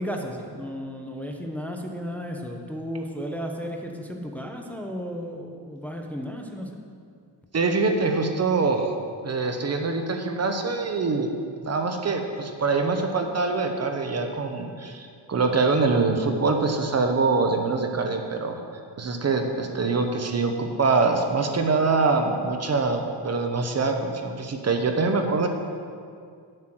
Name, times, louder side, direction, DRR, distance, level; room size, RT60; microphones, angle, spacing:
voice 1, 0.0-6.8, equal, 5° left, 2 dB, 0.8 m, -34 dB
voice 2, 7.5-8.9 9.2-11.3 11.6-18.6 19.0-25.5, right 3 dB, 35° right, 5 dB, 0.8 m, -24 dB
9.4 x 7.7 x 6.1 m, 2.2 s
wide cardioid pair, 135°, 43 cm